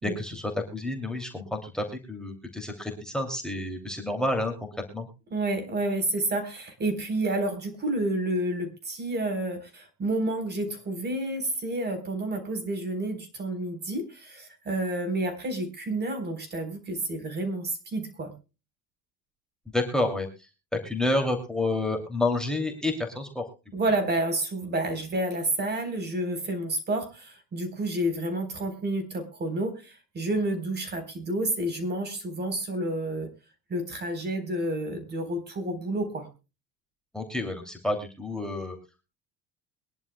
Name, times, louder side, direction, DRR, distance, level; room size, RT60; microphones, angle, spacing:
voice 1, 0.0-4.5 4.9-5.1 19.7-20.3 20.7-23.4 37.1-38.8, left 2 dB, ahead, 5 dB, 2.7 m, -29 dB
voice 2, 5.3-18.3 23.7-33.3 33.7-36.3, right 1 dB, 30° right, 8 dB, 3.9 m, -30 dB
23.0 x 11.0 x 2.2 m, 0.30 s
cardioid pair, 110°, 33 cm